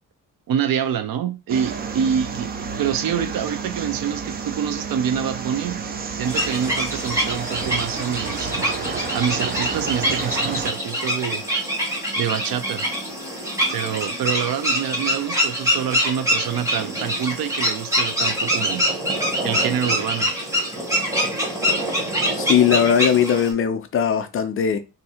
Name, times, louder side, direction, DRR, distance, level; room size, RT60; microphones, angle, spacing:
voice 1, 0.5-5.8 6.2-8.5 9.1-11.4 12.2-12.9 13.7-18.9 19.4-20.3, right 8 dB, 90° right, 0.7 m, -26 dB
sound 1, 1.5-10.7, right 5 dB, 30° right, 0.4 m, -31 dB
sound 2, 6.2-23.5, equal, 10° right, 0.9 m, -24 dB
voice 2, 22.3-24.8, left 8 dB, 40° left, 0.4 m, -19 dB
2.7 x 2.6 x 4.2 m
wide cardioid pair, 170°, 34 cm